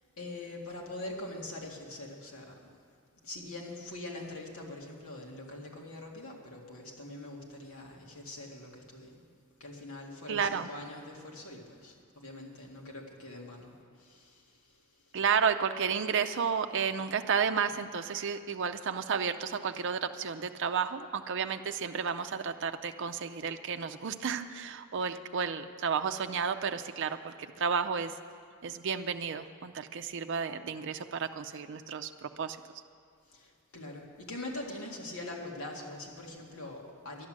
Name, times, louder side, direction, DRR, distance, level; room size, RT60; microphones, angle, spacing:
voice 1, 0.2-2.7 3.2-9.3 9.6-14.8 15.1-15.2 33.2-37.3, left 2 dB, 75° left, -1 dB, 2.1 m, -43 dB
voice 2, 10.3-10.7 15.1-28.2 28.6-32.6, right 6 dB, 60° right, 7 dB, 0.5 m, -32 dB
11.5 x 10.5 x 7.5 m, 2.4 s
head